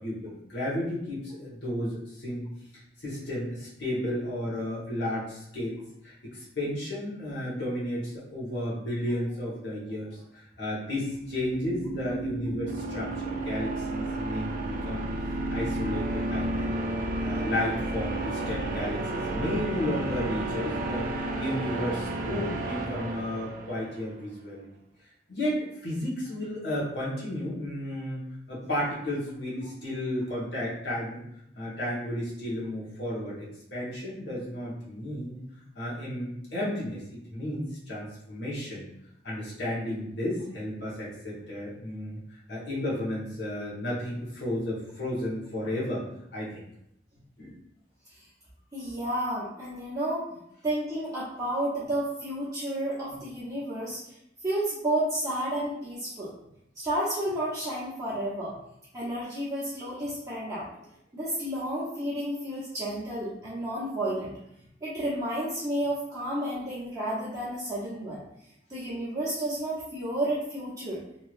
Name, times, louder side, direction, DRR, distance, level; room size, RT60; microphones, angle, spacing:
voice 1, 0.0-2.5 3.0-5.8 6.0-15.1 15.5-16.8 17.2-21.1 21.4-24.7 25.3-28.2 28.5-31.2 31.5-35.4 35.7-38.9 39.2-46.1 46.3-46.6 47.4-47.6, left 1 dB, 70° left, -7 dB, 1.2 m, -33 dB
sound 1, 11.1-24.0, right 2 dB, 50° right, 0.4 m, -32 dB
voice 2, 48.7-50.3 50.6-56.3 56.8-58.6 58.9-60.7 61.1-64.3 64.8-68.2 68.7-71.0, right 1 dB, 20° right, -10 dB, 0.8 m, -31 dB
3.1 x 2.8 x 2.5 m, 0.79 s
head